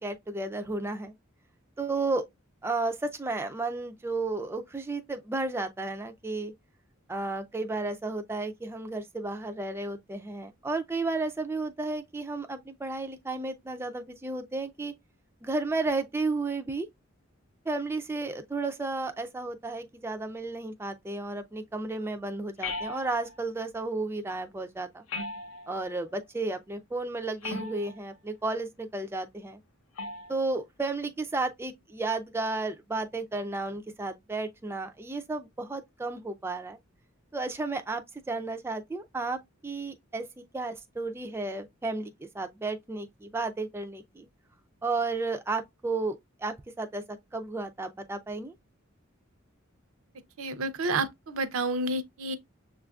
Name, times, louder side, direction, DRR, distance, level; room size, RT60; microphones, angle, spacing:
voice 1, 0.0-1.1 1.8-2.3 2.6-6.5 7.1-14.9 15.4-16.9 17.7-25.0 25.7-29.6 30.3-36.8 37.3-40.3 40.5-44.3 44.8-46.2 46.4-47.0 47.3-48.5, right 3 dB, 10° right, 0.3 m, -33 dB
sound 1, 22.6-23.5 25.1-25.9 27.4-28.1 30.0-30.4, left 3 dB, 80° left, 0.7 m, -37 dB
voice 2, 50.4-52.4, right 2 dB, 75° right, 0.5 m, -30 dB
6.2 x 2.4 x 2.2 m
head